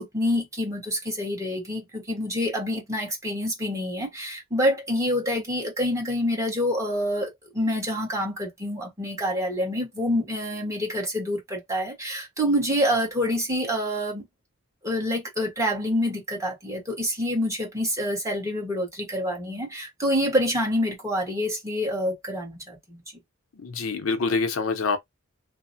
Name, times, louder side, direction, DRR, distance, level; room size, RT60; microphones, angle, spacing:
voice 1, 0.0-14.3 14.8-23.0, equal, 15° right, 1.3 m, -27 dB
voice 2, 23.6-25.0, left 4 dB, 90° left, 0.7 m, -25 dB
2.8 x 2.0 x 2.6 m
head